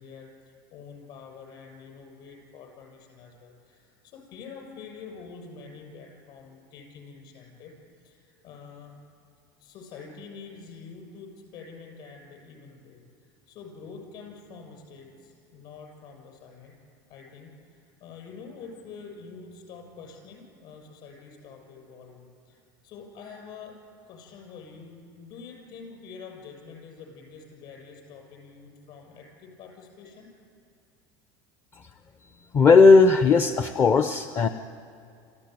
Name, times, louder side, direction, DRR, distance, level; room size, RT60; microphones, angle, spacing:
voice 1, 0.0-7.8 8.0-9.0 9.6-16.8 17.1-23.8 24.0-30.3, left 5 dB, 50° left, 2 dB, 6.7 m, -46 dB
voice 2, 32.5-34.5, left 4 dB, 25° left, 9 dB, 0.5 m, -17 dB
26.5 x 15.0 x 9.3 m, 2.4 s
cardioid pair, 160°, 10 cm